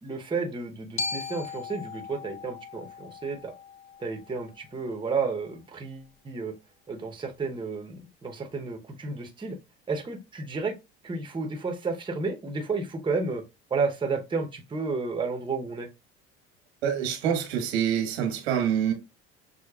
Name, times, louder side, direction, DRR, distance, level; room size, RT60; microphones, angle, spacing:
voice 1, 0.0-3.5 4.0-6.5 6.9-9.6 9.9-10.8 11.0-13.4 13.7-15.9, right 4 dB, 15° right, 0.8 m, -31 dB
Glockenspiel, 1.0-5.1, left 4 dB, 25° left, 0.3 m, -38 dB
voice 2, 16.8-18.9, right 9 dB, 90° right, 1.4 m, -26 dB
6.4 x 2.2 x 2.3 m
supercardioid pair, 90°, 31 cm